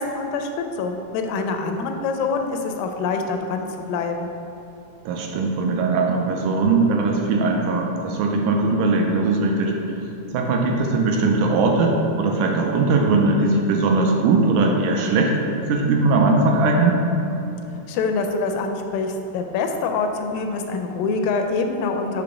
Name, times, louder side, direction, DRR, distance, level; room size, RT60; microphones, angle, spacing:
voice 1, 0.0-4.3 17.9-22.2, left 4 dB, 90° left, 5 dB, 2.2 m, -25 dB
voice 2, 5.1-10.0 10.3-15.3 15.7-17.0, right 3 dB, 80° right, 1 dB, 2.0 m, -20 dB
5.7 x 3.6 x 5.0 m, 3.0 s
omnidirectional pair, 3.8 m